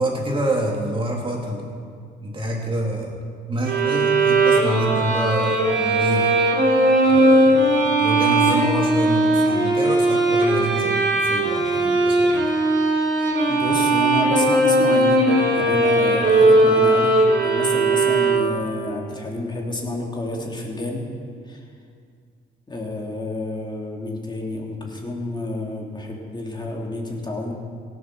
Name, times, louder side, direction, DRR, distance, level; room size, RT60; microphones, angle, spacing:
voice 1, 0.0-1.8 2.2-3.1 3.5-6.3 7.1-12.5, right 1 dB, 25° right, -1 dB, 3.2 m, -27 dB
sound 1, 3.6-18.8, right 2 dB, 70° right, 3.5 m, -18 dB
voice 2, 13.4-21.0 21.4-21.6 22.7-27.5, left 1 dB, 25° left, -1 dB, 3.0 m, -29 dB
17.0 x 7.8 x 6.2 m, 2.2 s
cardioid pair, 85°, 19 cm